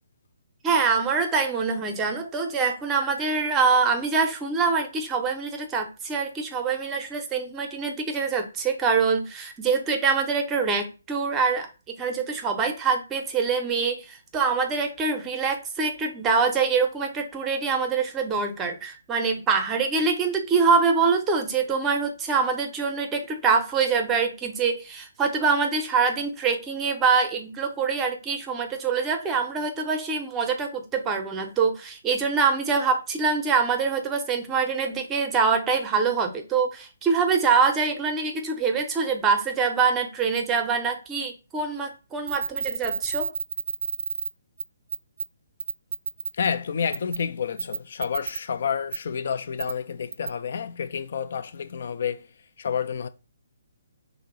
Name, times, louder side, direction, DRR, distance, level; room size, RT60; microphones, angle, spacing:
voice 1, 0.6-11.7 12.0-43.3, right 5 dB, 15° right, 0.6 m, -24 dB
sound 1, 42.3-44.3 44.6-44.7 44.9-45.2 45.6-46.3 46.9-47.2 47.6-48.4 48.9-49.0 49.6-49.7 50.1-50.3, right 5 dB, 60° right, 0.3 m, -29 dB
voice 2, 46.3-52.3 52.6-53.1, left 7 dB, 55° left, 0.3 m, -29 dB
2.9 x 2.0 x 3.7 m
figure-of-eight pair, 140°, 0 cm